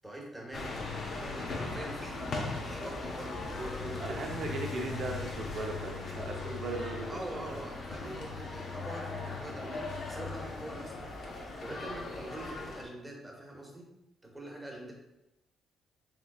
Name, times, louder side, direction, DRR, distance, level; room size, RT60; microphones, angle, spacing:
voice 1, 0.0-4.2 7.1-11.1 11.6-13.9 14.2-14.9, right 1 dB, 10° right, -1 dB, 1.1 m, -44 dB
sound 1, 0.5-12.8, left 3 dB, 60° left, 0.8 m, -39 dB
voice 2, 4.0-7.6 8.0-8.2, right 2 dB, 65° right, 1 dB, 0.7 m, -38 dB
3.7 x 3.7 x 2.4 m, 0.93 s
cardioid pair, 90°, 0 cm